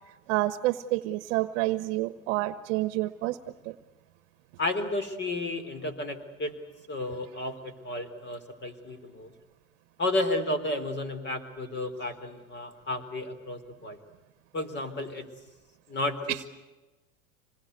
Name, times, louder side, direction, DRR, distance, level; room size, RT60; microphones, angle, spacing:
voice 1, 0.3-3.4 3.6-3.7 16.3-16.4, right 17 dB, 60° right, 13 dB, 1.3 m, -28 dB
voice 2, 4.6-6.5 6.9-9.3 10.0-14.0 14.5-15.3 15.9-16.4, left 2 dB, 25° left, 11 dB, 4.1 m, -32 dB
27.0 x 20.5 x 8.2 m, 1.1 s
hypercardioid pair, 115°, 40 cm